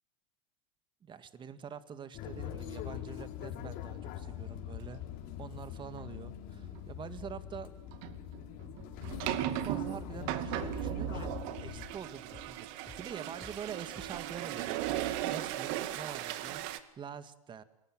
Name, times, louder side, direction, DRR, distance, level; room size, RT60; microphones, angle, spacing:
voice 1, 1.0-5.0 5.4-7.7 9.1-11.3 11.6-14.9 15.3-17.6, right 7 dB, 25° right, 11 dB, 2.1 m, -45 dB
sound 1, 2.1-11.9, left 11 dB, 50° left, 4.6 m, -43 dB
sound 2, 6.0-6.1 6.6-6.8 7.9-16.8, right 13 dB, 55° right, 2.2 m, -37 dB
sound 3, 9.6-13.6 13.9-14.2, left 4 dB, 15° left, 4.3 m, -53 dB
28.5 x 22.0 x 7.8 m, 0.81 s
hypercardioid pair, 105°, 18 cm